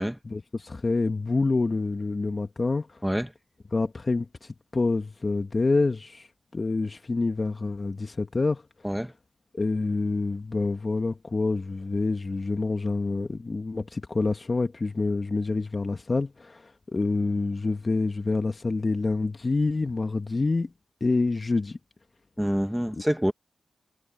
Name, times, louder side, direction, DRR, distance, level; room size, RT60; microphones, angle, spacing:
voice 1, 0.0-3.0 3.7-8.6 9.5-20.7 21.0-21.8, left 3 dB, 40° left, 1.6 m, -27 dB
voice 2, 22.4-23.3, equal, 5° right, 1.8 m, -26 dB
cardioid pair, 55°, 0 cm